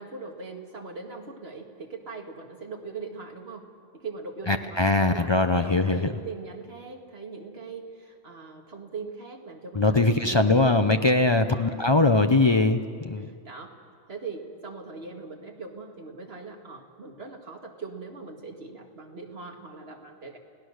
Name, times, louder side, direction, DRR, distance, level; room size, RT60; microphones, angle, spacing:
voice 1, 0.0-3.7 3.9-10.6 11.4-12.2 13.2-13.8 14.1-20.4, right 4 dB, 45° right, 2 dB, 2.2 m, -41 dB
voice 2, 4.5-6.1 9.8-13.3, left 2 dB, 45° left, 7 dB, 0.3 m, -21 dB
29.5 x 17.0 x 6.5 m, 2.1 s
omnidirectional pair, 1.5 m